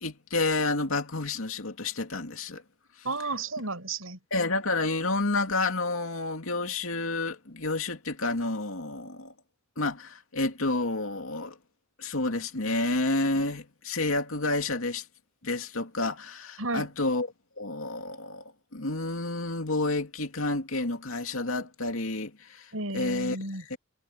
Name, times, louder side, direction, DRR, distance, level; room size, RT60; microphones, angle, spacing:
voice 1, 0.0-2.6 4.3-9.3 9.8-11.6 12.0-15.0 15.4-17.3 17.6-18.4 18.7-23.4 23.7-23.8, left 2 dB, 85° left, 2.5 m, -30 dB
voice 2, 3.0-4.2 16.6-16.9 22.7-23.6, right 3 dB, 85° right, 7.1 m, -32 dB
head